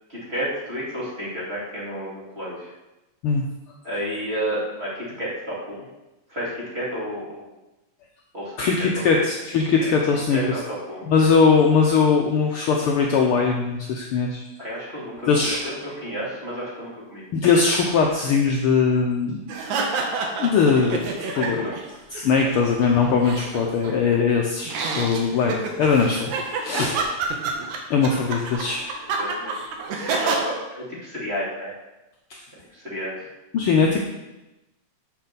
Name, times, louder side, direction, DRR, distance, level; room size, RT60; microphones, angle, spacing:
voice 1, 0.1-2.7 3.8-5.8 6.3-7.5 8.3-9.0 9.8-9.9 10.3-11.1 14.6-17.2 19.5-19.7 21.3-21.8 29.0-29.5 29.9-31.7 32.7-33.3, equal, 20° right, -7 dB, 2.5 m, -31 dB
voice 2, 8.6-10.6 11.1-14.4 15.3-15.6 17.3-19.4 19.7-19.8 20.4-21.0 21.3-21.7 22.1-26.3 26.6-27.1 27.9-28.9 32.3-32.4 33.5-34.0, left 5 dB, 80° left, 1 dB, 1.2 m, -20 dB
sound 1, 19.5-21.9 22.2-24.1 24.7-30.4, right 4 dB, 80° right, 2.5 m, -28 dB
6.7 x 5.9 x 6.7 m, 1.0 s
omnidirectional pair, 3.4 m